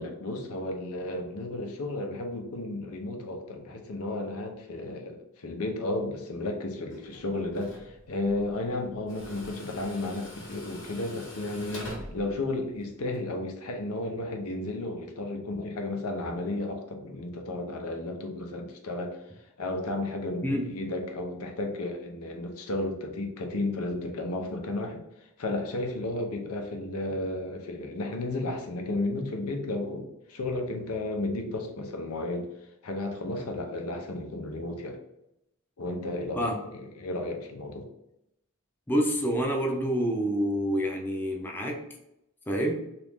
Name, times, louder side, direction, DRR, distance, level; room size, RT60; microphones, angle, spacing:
voice 1, 0.0-19.2 19.6-25.0 25.4-32.5 32.8-35.0 35.8-37.9, left 2 dB, 85° left, 3 dB, 0.6 m, -33 dB
Tools, 6.9-13.2, equal, 60° left, 0.9 m, -44 dB
voice 2, 38.9-41.8 42.5-42.8, equal, 10° left, 1 dB, 0.4 m, -27 dB
2.9 x 2.5 x 3.4 m, 0.83 s
head